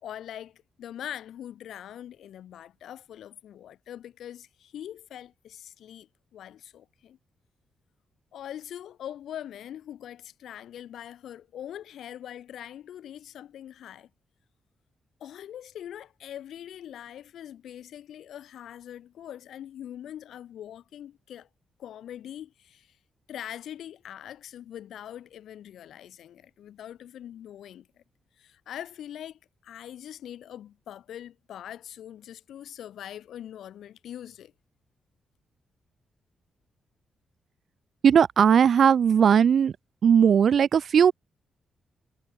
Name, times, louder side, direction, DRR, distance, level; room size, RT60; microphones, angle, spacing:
voice 1, 0.0-7.2 8.3-14.1 15.2-21.5 21.8-23.0 23.3-28.0 28.4-34.5, left 10 dB, 85° left, 3.0 m, -42 dB
voice 2, 38.0-39.7 40.0-41.1, right 7 dB, 50° right, 0.5 m, -18 dB
wide cardioid pair, 165°, 0 cm